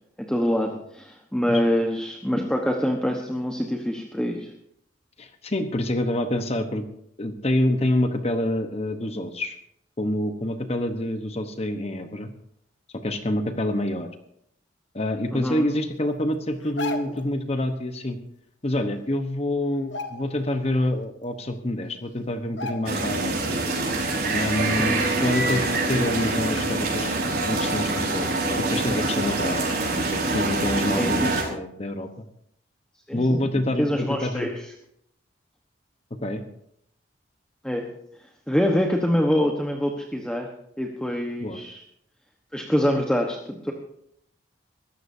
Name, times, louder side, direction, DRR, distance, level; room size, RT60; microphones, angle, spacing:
voice 1, 0.2-4.5 15.3-15.7 24.8-25.1 30.9-31.5 33.1-33.4 33.8-34.7 37.6-37.9 38.5-40.5 40.8-41.8 42.5-43.7, equal, 5° left, 1 dB, 1.1 m, -25 dB
voice 2, 5.2-6.8 7.2-9.6 10.0-12.3 13.0-14.1 14.9-18.2 18.6-23.5 24.3-27.2 27.4-28.3 28.7-29.7 30.1-32.3 33.1-34.5 36.2-36.4 41.4-41.6, left 1 dB, 35° left, 7 dB, 1.0 m, -27 dB
sound 1, 16.6-17.3 18.8-18.9 19.2-19.4 19.8-20.6 21.0-21.1 21.9-22.0 22.6-23.2 23.6-23.7, left 2 dB, 65° left, 1.5 m, -35 dB
sound 2, 22.9-31.4, right 2 dB, 50° right, 4.8 m, -25 dB
23.0 x 15.0 x 2.7 m, 0.71 s
head